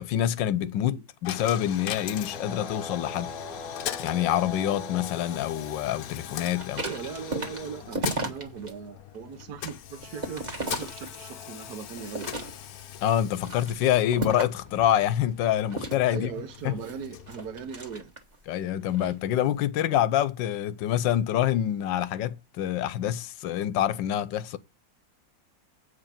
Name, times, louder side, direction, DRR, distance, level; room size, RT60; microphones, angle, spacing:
voice 1, 0.0-3.3 4.0-6.8 13.0-16.3 16.6-16.7 18.5-24.6, left 11 dB, 85° left, 1.4 m, -26 dB
Coin (dropping), 1.2-18.2, left 11 dB, 65° left, 0.9 m, -41 dB
sound 1, 1.9-6.5 9.9-12.7, left 2 dB, 15° left, 1.3 m, -44 dB
sound 2, 6.5-8.7 9.1-11.5 12.0-12.8 13.3-14.7 15.7-18.4 18.8-19.2, right 2 dB, 25° right, 1.4 m, -35 dB
voice 2, 6.8-12.3 16.1-18.1, right 6 dB, 65° right, 1.4 m, -39 dB
8.1 x 5.0 x 7.3 m
omnidirectional pair, 2.0 m